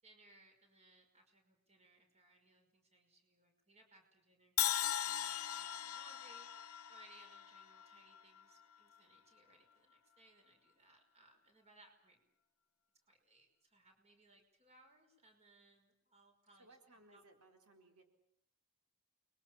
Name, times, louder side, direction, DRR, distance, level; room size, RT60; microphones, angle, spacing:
voice 1, 0.0-4.8 5.0-12.2 13.1-17.2, right 2 dB, 30° right, 4 dB, 5.3 m, -66 dB
Crash cymbal, 4.6-8.6, left 11 dB, 85° left, 1.0 m, -39 dB
voice 2, 16.6-18.0, right 2 dB, 80° right, 4 dB, 4.3 m, -64 dB
30.0 x 22.5 x 7.3 m, 0.74 s
head